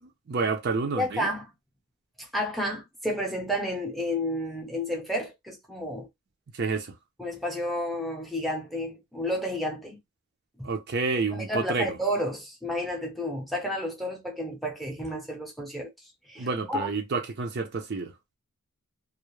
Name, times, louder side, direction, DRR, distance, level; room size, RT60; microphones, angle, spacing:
voice 1, 0.0-1.3 6.5-7.0 10.6-12.0 16.4-18.1, right 4 dB, 50° right, 0.4 m, -29 dB
voice 2, 1.0-1.4 2.2-6.1 7.2-10.0 10.6-10.7 11.3-15.9 16.3-16.9, equal, ahead, 0.6 m, -31 dB
2.3 x 2.0 x 3.0 m
head